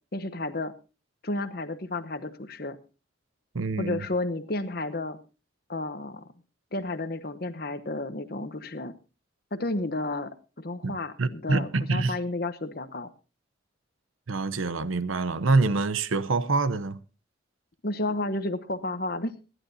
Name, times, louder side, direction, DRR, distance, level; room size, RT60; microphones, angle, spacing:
voice 1, 0.1-0.7 1.2-2.8 3.8-5.2 5.7-6.3 6.7-8.9 9.5-13.1 17.8-19.3, left 2 dB, 50° left, 1.0 m, -32 dB
voice 2, 3.5-4.1 10.8-12.2 14.3-17.0, right 3 dB, 90° right, 0.8 m, -26 dB
25.0 x 11.0 x 2.7 m
head